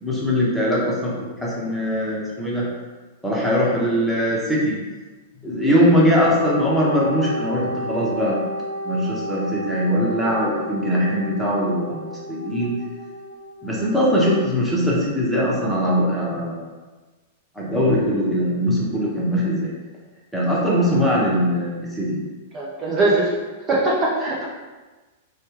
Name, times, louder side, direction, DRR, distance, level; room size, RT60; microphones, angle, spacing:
voice 1, 0.0-1.1 1.4-2.7 3.2-4.8 5.4-8.4 8.8-12.7 13.6-16.7 17.6-19.7 20.3-22.2, equal, ahead, -6 dB, 0.9 m, -21 dB
Wind instrument woodwind instrument, 6.3-14.1, equal, 90° left, 0.3 m, -32 dB
voice 2, 22.5-23.3 23.7-24.5, right 2 dB, 35° right, -4 dB, 0.6 m, -21 dB
3.2 x 2.3 x 3.1 m, 1.3 s
hypercardioid pair, 110°, 0 cm